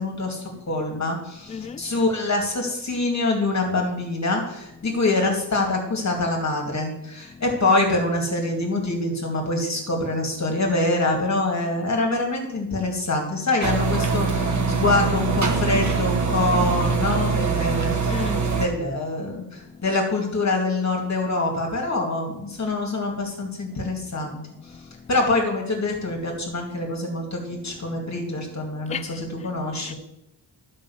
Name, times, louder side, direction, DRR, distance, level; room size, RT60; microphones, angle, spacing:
voice 1, 0.0-24.4 25.1-29.9, left 2 dB, 40° left, 2.2 m, -25 dB
voice 2, 1.5-2.1 4.7-5.0 7.3-7.6 9.7-10.0 17.8-18.8 19.6-20.0 22.6-22.8 23.8-24.3 24.5-25.2 25.9-26.2 26.5-27.2 27.5-29.9, left 6 dB, 20° left, 0.3 m, -41 dB
sound 1, 13.6-18.7, right 5 dB, 40° right, 1.4 m, -23 dB
11.0 x 5.5 x 7.0 m
wide cardioid pair, 140°, 44 cm